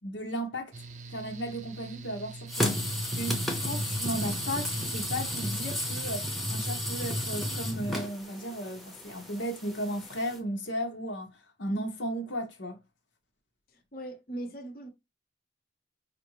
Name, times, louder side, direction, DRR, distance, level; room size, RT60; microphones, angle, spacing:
voice 1, 0.0-0.7 1.1-2.7 3.1-12.8, equal, 85° left, 1.0 m, -35 dB
Mechanical fan, 0.7-6.0, right 3 dB, 40° right, 0.5 m, -44 dB
sound 1, 2.5-10.4, left 1 dB, ahead, 0.7 m, -33 dB
voice 2, 13.7-14.9, right 1 dB, 50° left, 0.9 m, -40 dB
5.1 x 2.5 x 3.0 m
head